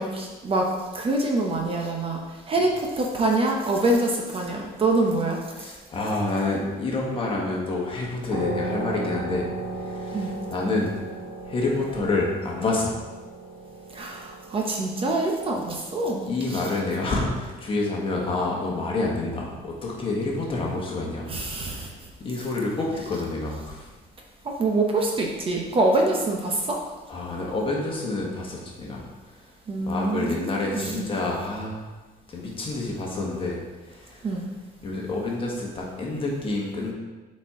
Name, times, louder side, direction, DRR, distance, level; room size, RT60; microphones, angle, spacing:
voice 1, 0.0-5.4 10.1-10.3 13.9-16.6 21.3-21.9 24.4-26.8 29.7-31.1 34.2-34.5, right 2 dB, 30° right, 0 dB, 0.9 m, -25 dB
voice 2, 5.5-9.5 9.8-10.9 11.4-12.9 16.3-21.3 21.6-21.9 22.2-23.9 27.1-29.0 29.8-31.9 32.3-33.6 33.9-34.3 34.8-36.9, left 2 dB, 30° left, -2 dB, 1.4 m, -28 dB
sound 1, 8.3-17.5, right 2 dB, 15° right, 2.1 m, -36 dB
7.8 x 4.4 x 3.7 m, 1.2 s
cardioid pair, 150°, 17 cm